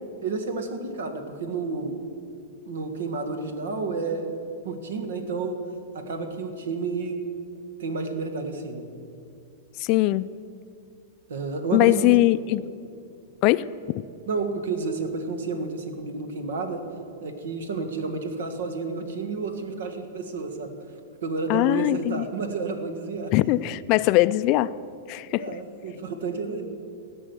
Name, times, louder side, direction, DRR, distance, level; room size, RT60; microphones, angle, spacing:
voice 1, 0.2-2.0 2.6-4.4 4.6-5.6 5.9-7.2 7.8-8.9 11.3-12.1 14.3-16.8 17.2-20.7 21.2-23.3 25.4-26.6, right 4 dB, 85° right, 7 dB, 1.7 m, -30 dB
voice 2, 9.8-10.3 11.7-12.7 13.4-13.6 21.5-22.2 23.3-24.7 25.1-25.5, left 17 dB, 40° left, 16 dB, 0.3 m, -21 dB
16.0 x 6.3 x 8.2 m, 2.5 s
supercardioid pair, 145°, 0 cm